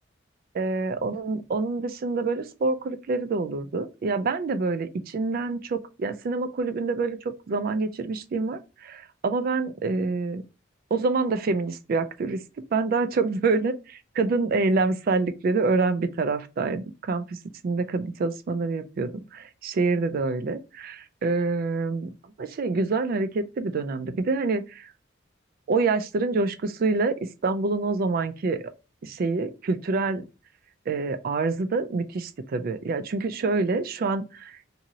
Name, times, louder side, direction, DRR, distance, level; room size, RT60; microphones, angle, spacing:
voice 1, 0.6-7.2 7.5-10.4 10.9-12.4 12.7-17.4 17.6-22.1 22.4-24.9 25.7-27.2 27.4-28.7 29.0-30.2 30.9-34.6, right 3 dB, 50° right, 0.3 m, -26 dB
2.7 x 2.6 x 2.8 m
head